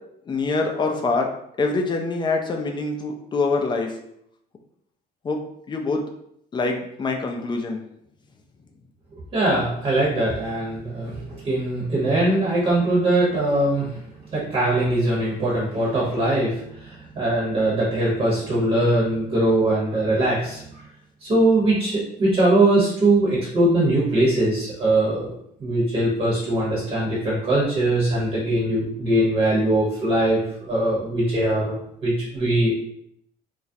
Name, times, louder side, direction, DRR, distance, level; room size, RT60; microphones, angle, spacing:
voice 1, 0.3-1.3 1.6-3.9 5.2-5.4 5.7-6.0 6.5-7.8, left 3 dB, 25° left, 2 dB, 0.4 m, -24 dB
voice 2, 9.3-14.0 14.3-20.7 21.2-25.3 25.6-30.4 30.7-32.8, right 1 dB, 35° right, -5 dB, 0.8 m, -21 dB
2.3 x 2.0 x 2.6 m, 0.72 s
cardioid pair, 110°, 17 cm